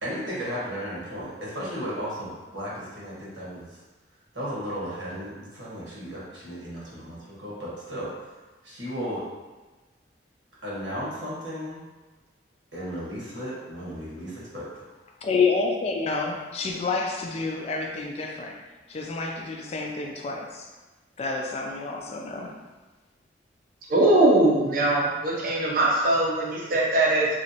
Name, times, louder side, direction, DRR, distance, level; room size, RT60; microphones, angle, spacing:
voice 1, 0.0-3.8 4.3-8.1 8.6-9.2 10.6-11.8 12.7-14.6, equal, 85° right, -7 dB, 1.2 m, -35 dB
voice 2, 15.2-18.6 18.9-20.7 21.2-22.5, left 4 dB, 35° left, 1 dB, 0.3 m, -28 dB
voice 3, 23.9-27.3, right 1 dB, 50° right, -4 dB, 0.6 m, -21 dB
3.0 x 2.6 x 2.7 m, 1.2 s
head